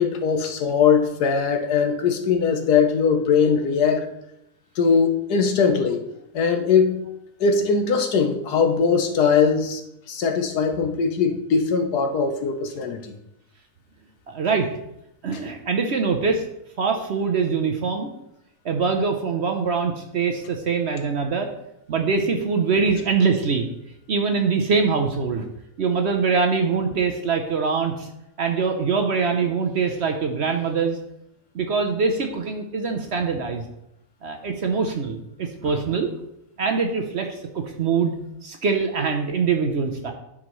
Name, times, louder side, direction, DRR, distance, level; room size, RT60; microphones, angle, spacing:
voice 1, 0.0-4.0 4.8-6.0 6.3-7.0 7.4-9.8 10.1-13.1, left 5 dB, 85° left, 6 dB, 1.4 m, -20 dB
voice 2, 14.3-14.7 15.2-16.4 16.8-18.1 18.6-21.5 21.9-23.6 24.1-25.4 25.8-28.1 28.4-31.0 31.5-33.6 34.2-36.1 36.6-38.1 38.4-40.1, right 5 dB, 55° right, 4 dB, 0.8 m, -23 dB
11.5 x 4.9 x 3.1 m, 0.83 s
omnidirectional pair, 1.6 m